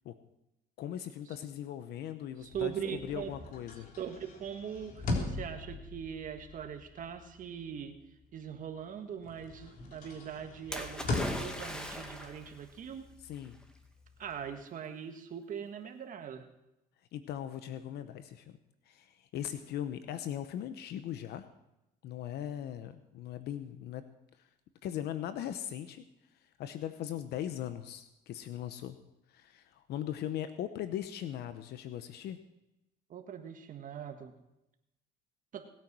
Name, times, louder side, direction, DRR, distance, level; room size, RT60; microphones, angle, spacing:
voice 1, 0.8-3.9 13.2-13.6 17.1-18.6 18.9-21.5 22.0-24.0 24.8-26.0 26.6-29.0 29.3-32.4, left 11 dB, 75° left, 10 dB, 0.9 m, -39 dB
sound 1, 2.4-8.9 9.2-14.6, left 2 dB, 55° left, 3.8 m, -41 dB
voice 2, 2.4-3.3 4.0-8.0 8.3-11.1 11.3-13.1 14.2-16.5 33.1-34.3 35.5-35.7, right 8 dB, 50° right, 6 dB, 1.6 m, -41 dB
Splash splatter, 10.7-12.5 13.4-13.5, equal, 5° left, 2.1 m, -39 dB
19.5 x 9.1 x 6.2 m, 0.89 s
cardioid pair, 110°, 17 cm